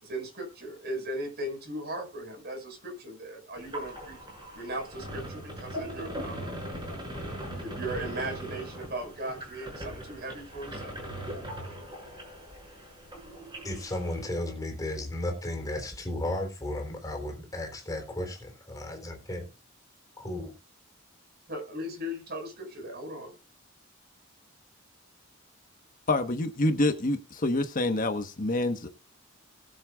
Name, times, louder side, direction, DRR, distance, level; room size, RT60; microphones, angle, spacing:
voice 1, 0.0-4.2 4.5-6.6 7.5-11.0 21.5-23.3, right 1 dB, 50° right, 5.6 m, -37 dB
sound 1, 3.6-14.3, right 1 dB, 20° right, 6.4 m, -40 dB
voice 2, 13.6-19.5 20.2-20.5, left 1 dB, 15° left, 3.7 m, -34 dB
voice 3, 26.1-28.9, left 2 dB, 40° left, 1.2 m, -27 dB
21.0 x 7.8 x 2.4 m
head